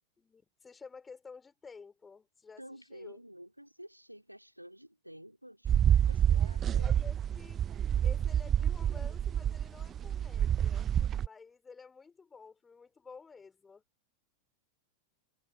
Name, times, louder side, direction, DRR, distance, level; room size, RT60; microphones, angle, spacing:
voice 1, 0.2-2.6 2.9-3.2 6.3-7.6 8.0-10.9 11.2-13.8, left 5 dB, 15° left, 5.2 m, -52 dB
voice 2, 2.6-6.9, equal, 90° right, 4.4 m, -51 dB
sound 1, 5.6-11.3, right 9 dB, 25° right, 0.7 m, -28 dB
figure-of-eight pair, 90°, 0 cm